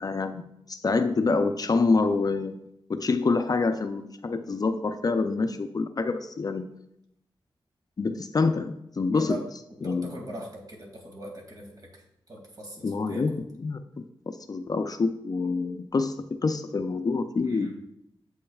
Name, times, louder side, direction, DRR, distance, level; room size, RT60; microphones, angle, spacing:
voice 1, 0.0-2.6 2.9-6.7 8.0-9.4 9.8-10.2 12.8-16.1 16.4-17.7, left 4 dB, 40° left, 8 dB, 0.4 m, -26 dB
voice 2, 9.1-9.5 9.8-13.4 17.5-17.8, right 1 dB, 40° right, -1 dB, 2.3 m, -40 dB
8.5 x 7.8 x 2.3 m, 0.80 s
wide cardioid pair, 90°, 10 cm